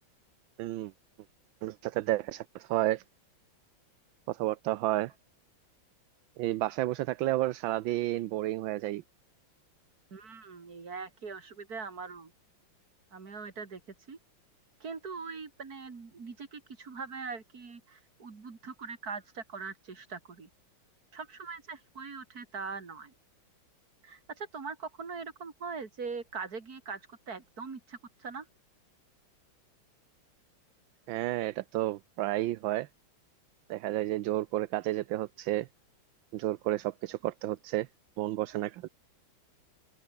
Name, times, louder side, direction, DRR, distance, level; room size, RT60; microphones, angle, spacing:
voice 1, 0.6-0.9 1.6-3.0 4.3-5.1 6.4-9.0 31.1-32.9 33.7-35.7 36.3-37.9 38.2-38.9, right 16 dB, 75° right, 1.4 m, -31 dB
voice 2, 10.1-12.3 13.1-13.8 14.1-14.2 14.8-20.5 21.1-23.1 24.0-28.4, right 5 dB, 45° right, 3.2 m, -41 dB
open air
omnidirectional pair, 2.2 m